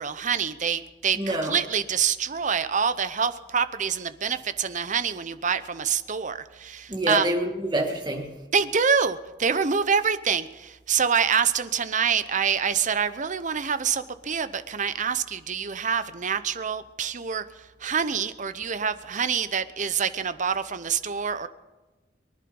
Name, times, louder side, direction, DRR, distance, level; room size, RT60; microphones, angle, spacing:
voice 1, 0.0-7.3 8.5-21.5, right 6 dB, 45° right, 12 dB, 0.8 m, -26 dB
voice 2, 1.2-1.6 6.9-8.4, right 1 dB, 25° right, 1 dB, 2.3 m, -27 dB
23.5 x 11.0 x 5.3 m, 1.2 s
head